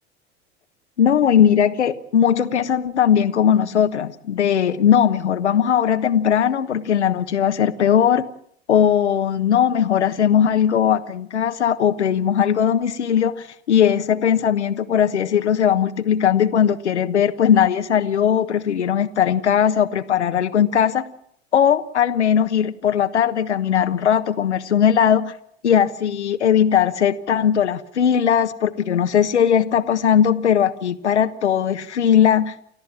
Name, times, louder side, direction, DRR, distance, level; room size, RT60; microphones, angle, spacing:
voice 1, 1.0-8.2 8.7-21.0 21.5-25.4 25.6-32.6, left 9 dB, 85° left, 1.3 m, -19 dB
30.0 x 14.0 x 7.4 m
hypercardioid pair, 85°, 34 cm